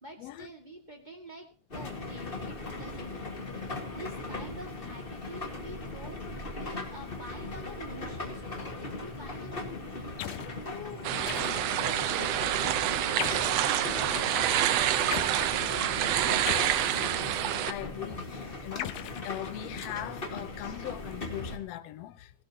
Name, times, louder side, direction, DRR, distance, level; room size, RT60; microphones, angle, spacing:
voice 1, 0.0-6.2 6.5-10.2 10.6-14.6 14.9-16.0, right 1 dB, 20° right, 1.6 m, -47 dB
sound 1, 1.7-21.6, left 2 dB, 25° left, 1.4 m, -39 dB
sound 2, 10.2-10.6 11.3-11.9 13.2-13.7 15.1-15.4 16.5-17.3 18.8-19.9, left 12 dB, 85° left, 2.3 m, -38 dB
sound 3, 11.0-17.7, right 11 dB, 70° right, 1.7 m, -27 dB
voice 2, 17.6-19.0 19.2-22.3, left 13 dB, 70° left, 1.7 m, -40 dB
17.5 x 16.5 x 2.8 m
omnidirectional pair, 3.5 m